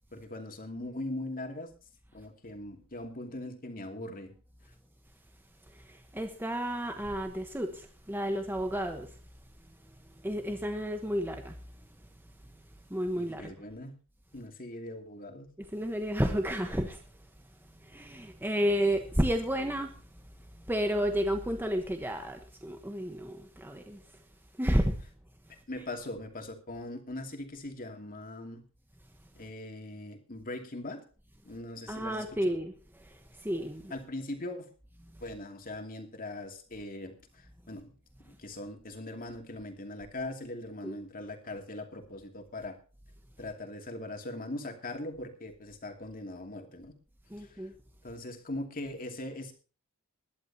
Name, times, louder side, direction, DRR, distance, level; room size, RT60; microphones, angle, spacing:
voice 1, 0.1-1.7 2.1-4.3 13.2-14.0 14.3-15.5 25.5-28.6 29.3-31.0 31.4-32.6 33.9-34.7 35.2-37.9 38.2-42.8 43.4-46.9 47.4-47.6 48.0-49.5, left 1 dB, 40° left, 2.7 m, -41 dB
voice 2, 5.7-9.2 9.7-11.6 12.5-12.6 12.9-13.5 15.6-17.3 17.7-24.2 24.6-25.0 25.7-25.8 31.9-33.9 35.0-35.2 40.8-40.9 47.3-47.7, equal, 10° right, 1.2 m, -32 dB
21.0 x 11.5 x 2.9 m
head